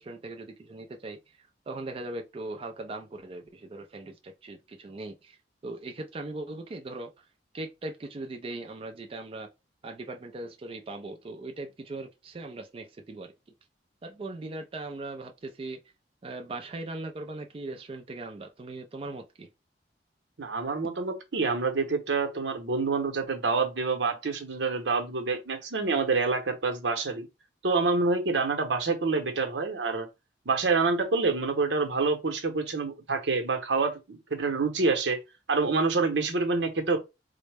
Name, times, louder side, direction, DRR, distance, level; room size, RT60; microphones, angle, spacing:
voice 1, 0.0-5.4 5.6-7.3 7.5-9.5 9.8-13.3 14.0-15.8 16.2-19.5, right 2 dB, 30° right, 0.4 m, -39 dB
voice 2, 20.4-27.2 27.6-30.1 30.5-35.2 35.5-37.0, right 4 dB, 85° right, 0.8 m, -27 dB
3.9 x 2.1 x 3.3 m
head